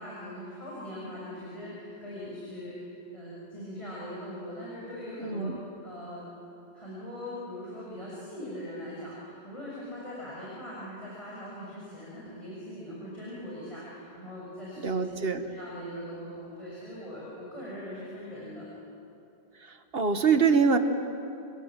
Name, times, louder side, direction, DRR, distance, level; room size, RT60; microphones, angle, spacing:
voice 1, 0.0-5.5 5.8-6.3 6.7-18.6, equal, 30° left, -7 dB, 6.6 m, -41 dB
voice 2, 5.2-5.5 14.8-15.4 19.9-20.8, right 5 dB, 70° right, 7 dB, 1.7 m, -24 dB
29.0 x 26.5 x 7.6 m, 2.8 s
omnidirectional pair, 1.0 m